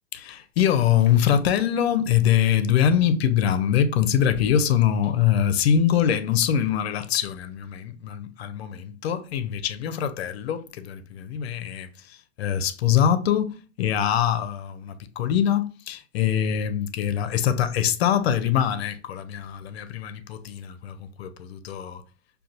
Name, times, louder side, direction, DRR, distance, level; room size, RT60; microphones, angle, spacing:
voice 1, 0.1-22.0, left 9 dB, 55° left, 0.6 m, -23 dB
6.4 x 2.4 x 2.5 m
figure-of-eight pair, 90°, 38 cm